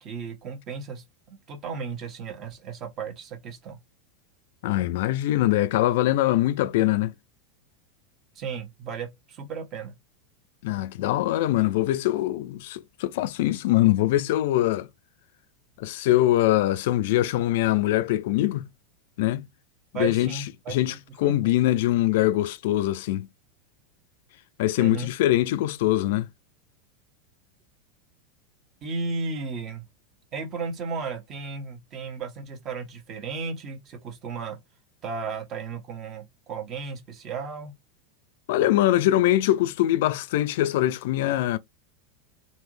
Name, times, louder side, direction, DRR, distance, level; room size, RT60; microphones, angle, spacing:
voice 1, 0.0-3.8 8.3-9.9 19.9-21.5 24.8-25.1 28.8-29.8 30.3-34.6 35.0-37.7, right 4 dB, 40° right, 1.4 m, -34 dB
voice 2, 4.6-7.1 10.6-14.9 15.8-18.7 19.2-19.5 19.9-23.3 24.6-26.3 38.5-41.6, left 14 dB, 65° left, 0.3 m, -23 dB
3.3 x 2.7 x 3.2 m
hypercardioid pair, 95°, 0 cm